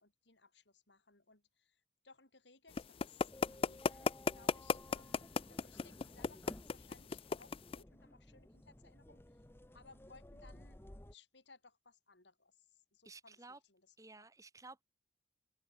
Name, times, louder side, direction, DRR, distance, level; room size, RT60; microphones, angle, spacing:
voice 1, 0.0-9.4 9.7-10.8 11.1-14.3, left 4 dB, 70° left, 5.1 m, -64 dB
sound 1, 2.8-7.8, left 5 dB, 30° left, 0.3 m, -34 dB
sound 2, 3.3-11.1, left 1 dB, 15° left, 0.9 m, -57 dB
voice 2, 13.0-13.6 14.0-14.8, right 3 dB, 20° right, 2.4 m, -54 dB
open air
head